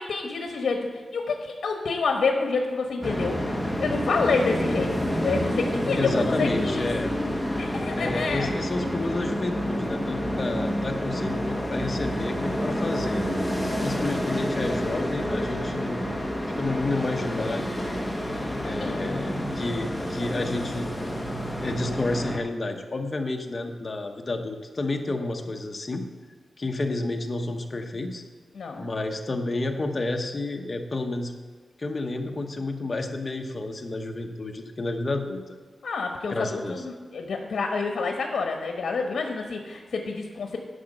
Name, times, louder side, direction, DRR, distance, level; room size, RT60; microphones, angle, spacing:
voice 1, 0.0-3.4 3.8-6.9 7.6-8.5 18.8-19.0 28.5-28.8 35.8-40.6, left 4 dB, 70° left, 3 dB, 1.0 m, -28 dB
sound 1, 3.0-22.4, equal, ahead, 0.9 m, -29 dB
voice 2, 6.0-7.1 7.9-13.2 13.8-16.1 16.6-17.7 18.6-20.9 21.6-26.0 26.6-28.2 28.8-31.3 31.8-35.5 36.3-36.8, left 2 dB, 30° left, 3 dB, 0.9 m, -30 dB
10.0 x 5.8 x 6.5 m, 1.5 s
wide cardioid pair, 150°, 0 cm